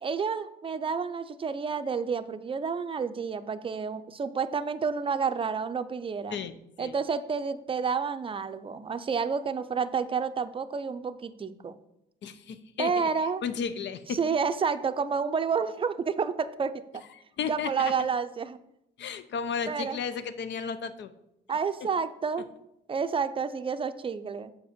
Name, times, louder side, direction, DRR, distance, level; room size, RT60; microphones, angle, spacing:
voice 1, 0.0-6.4 6.8-11.8 12.8-13.4 14.1-17.0 17.5-18.6 19.7-20.0 21.5-22.5 22.9-24.5, right 5 dB, 25° right, 10 dB, 0.5 m, -30 dB
voice 2, 6.3-6.9 12.2-13.1 13.4-14.2 17.4-18.0 19.0-21.1, left 6 dB, 65° left, 12 dB, 0.7 m, -34 dB
7.0 x 5.0 x 5.1 m, 0.82 s
cardioid pair, 90°, 20 cm